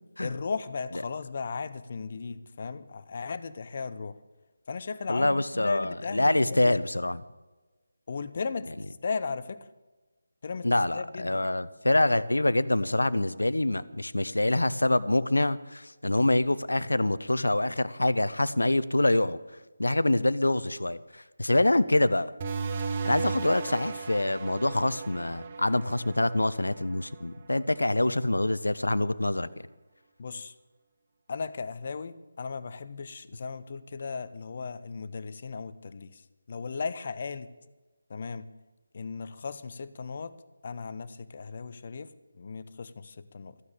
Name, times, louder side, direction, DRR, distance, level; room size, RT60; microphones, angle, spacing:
voice 1, 0.2-4.2 4.7-6.8 8.1-9.7 10.4-11.4 30.2-30.5 31.3-37.5 38.1-38.5 38.9-40.3 40.6-43.6, left 5 dB, 40° left, 14 dB, 0.8 m, -36 dB
voice 2, 5.1-7.2 10.6-19.4 19.8-22.3 23.0-29.5, left 1 dB, 70° left, 16 dB, 0.9 m, -25 dB
sound 1, 22.4-27.6, right 4 dB, 25° right, 1.3 m, -36 dB
14.5 x 9.7 x 8.6 m, 1.2 s
figure-of-eight pair, 155°, 0 cm